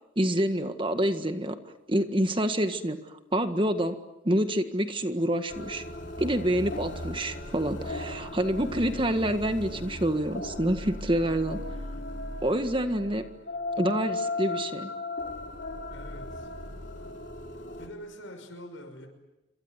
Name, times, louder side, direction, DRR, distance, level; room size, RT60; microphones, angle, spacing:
voice 1, 0.1-1.5 1.9-3.0 3.3-4.0 4.2-5.8 6.2-11.6 12.4-13.2 13.8-14.9, right 1 dB, 25° right, 8 dB, 1.7 m, -27 dB
sound 1, 5.5-17.9, left 2 dB, 60° left, 4.4 m, -37 dB
voice 2, 15.9-16.5 17.5-19.1, equal, 80° left, 3 dB, 6.0 m, -45 dB
28.0 x 25.0 x 8.1 m, 0.97 s
head